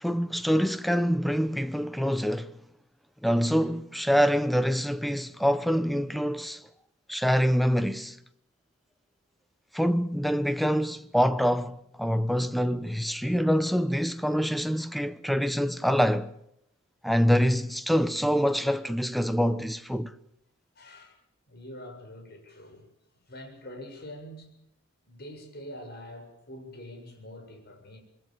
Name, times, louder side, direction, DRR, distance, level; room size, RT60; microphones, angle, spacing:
voice 1, 0.0-2.5 3.2-6.6 7.1-8.2 9.7-16.3 17.0-20.1, equal, ahead, 1.0 m, -25 dB
voice 2, 20.8-21.2 21.5-22.9 23.3-24.6 25.1-28.0, left 1 dB, 50° left, 7.3 m, -44 dB
27.0 x 22.0 x 7.4 m
head